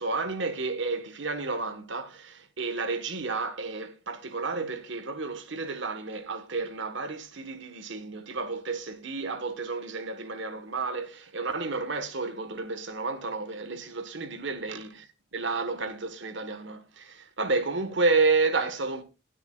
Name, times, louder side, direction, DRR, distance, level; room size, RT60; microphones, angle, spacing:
voice 1, 0.0-15.1 15.3-19.0, right 3 dB, 65° right, 1.6 m, -31 dB
21.0 x 8.3 x 2.5 m
head